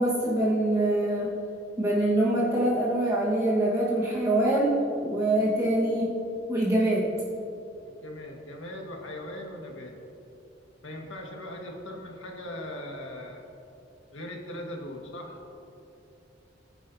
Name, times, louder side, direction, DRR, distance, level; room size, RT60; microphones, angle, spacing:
voice 1, 0.0-1.3 1.8-6.2 6.5-7.1, right 1 dB, 20° right, -7 dB, 1.4 m, -24 dB
voice 2, 7.8-10.0 10.8-13.5 14.1-15.4, left 1 dB, 85° left, 1 dB, 1.7 m, -39 dB
19.0 x 9.9 x 2.8 m, 2.7 s
head